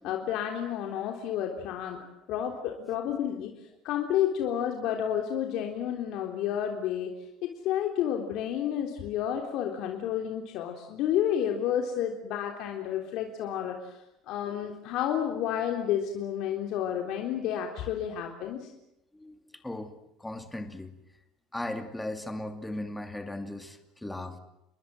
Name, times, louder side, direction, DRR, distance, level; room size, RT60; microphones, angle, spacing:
voice 1, 0.0-2.0 2.3-3.5 3.8-7.1 7.4-14.0 14.3-18.7, left 10 dB, 55° left, 2 dB, 3.6 m, -30 dB
voice 2, 19.6-19.9 20.2-20.9 21.5-24.4, left 1 dB, 5° left, 6 dB, 2.6 m, -37 dB
29.5 x 23.0 x 7.8 m, 0.84 s
cardioid pair, 175°, 0 cm